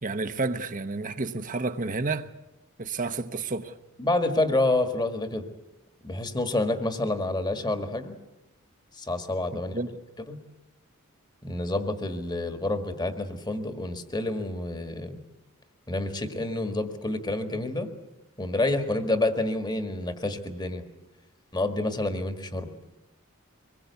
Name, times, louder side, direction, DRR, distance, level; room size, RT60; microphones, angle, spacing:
voice 1, 0.0-2.3 2.8-3.7 9.5-10.0, right 3 dB, 40° right, 1.0 m, -30 dB
voice 2, 4.0-5.5 6.0-8.1 8.9-9.7 10.3-10.4 11.4-15.2 15.9-17.9 18.4-20.8 21.5-22.7, left 2 dB, 20° left, 1.8 m, -28 dB
24.5 x 21.0 x 8.3 m
head